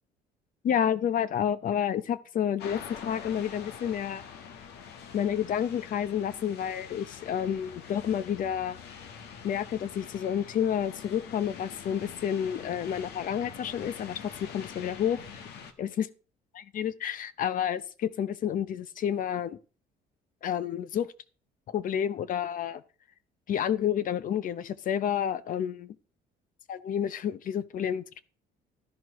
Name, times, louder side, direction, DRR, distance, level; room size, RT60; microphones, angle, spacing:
voice 1, 0.6-4.2 5.1-8.8 9.4-15.4 15.8-16.1 16.5-19.6 20.4-21.1 21.7-22.8 23.5-25.9 26.7-28.2, left 9 dB, 55° left, 0.8 m, -30 dB
sound 1, 2.6-15.7, left 7 dB, 80° left, 1.4 m, -45 dB
12.5 x 11.0 x 3.1 m
cardioid pair, 110°, 17 cm